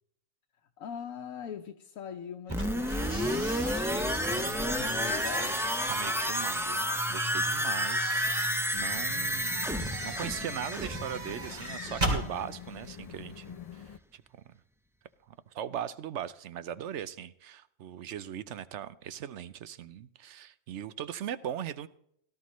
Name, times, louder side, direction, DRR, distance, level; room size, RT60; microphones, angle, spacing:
voice 1, 0.8-3.6 3.8-5.6, left 7 dB, 90° left, 1.2 m, -41 dB
sound 1, 2.5-12.2 12.5-12.6, equal, 5° right, 0.4 m, -31 dB
sound 2, 2.5-6.7 7.4-12.2, right 1 dB, 35° right, 3.4 m, -39 dB
voice 2, 5.9-9.7 10.0-13.8 14.1-14.2 14.5-14.6 15.3-21.9, right 9 dB, 65° right, 0.9 m, -39 dB
sound 3, 8.7-14.0, left 9 dB, 70° left, 0.3 m, -46 dB
17.0 x 13.0 x 3.1 m
omnidirectional pair, 1.4 m